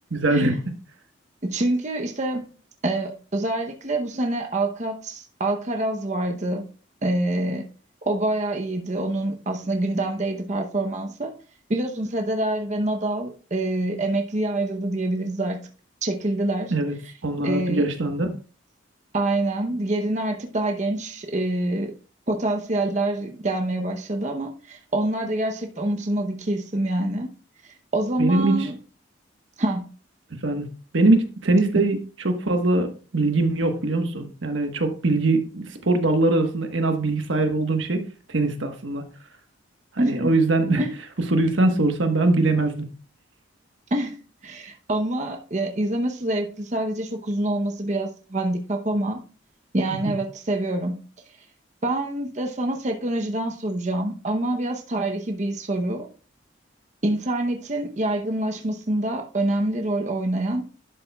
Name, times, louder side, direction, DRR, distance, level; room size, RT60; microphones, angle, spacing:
voice 1, 0.1-0.5 16.7-16.9 17.2-18.3 28.2-28.7 30.4-30.7 30.9-32.0 32.2-32.9 33.1-39.0 40.0-40.8 41.3-42.9 50.0-50.1, right 2 dB, 85° right, 1.3 m, -22 dB
voice 2, 1.4-2.5 2.8-6.6 7.0-7.7 8.1-11.3 11.7-15.7 16.0-16.7 17.4-17.9 19.1-21.9 22.3-27.3 27.6-28.7 29.6-29.9 31.7-31.8 40.0-40.3 40.8-40.9 43.9-44.2 44.4-49.2 49.7-51.0 51.8-56.1 57.0-60.7, right 1 dB, 40° right, 0.8 m, -26 dB
11.5 x 6.9 x 2.3 m
head